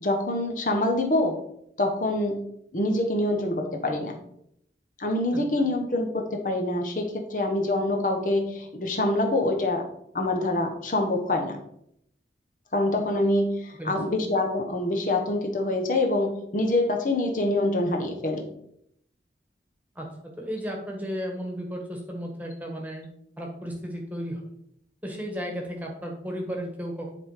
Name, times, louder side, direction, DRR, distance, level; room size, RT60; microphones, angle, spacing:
voice 1, 0.0-1.4 1.8-2.4 2.7-4.1 5.0-9.9 10.1-11.6 12.7-18.4, left 1 dB, 45° left, 2 dB, 1.1 m, -25 dB
voice 2, 5.3-5.7 13.8-13.9 19.9-20.1 20.4-23.1 23.4-24.5 25.0-27.1, equal, 10° right, 1 dB, 1.4 m, -34 dB
10.0 x 3.6 x 4.9 m, 0.73 s
head